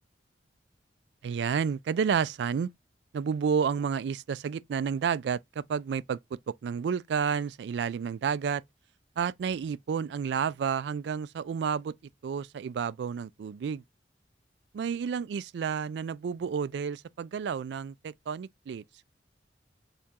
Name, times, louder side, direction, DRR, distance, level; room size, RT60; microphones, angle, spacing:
voice 1, 1.2-2.7 3.1-6.2 6.5-8.6 9.2-11.9 12.2-13.8 14.8-18.8, right 6 dB, 70° right, 0.3 m, -30 dB
6.5 x 2.4 x 2.8 m
head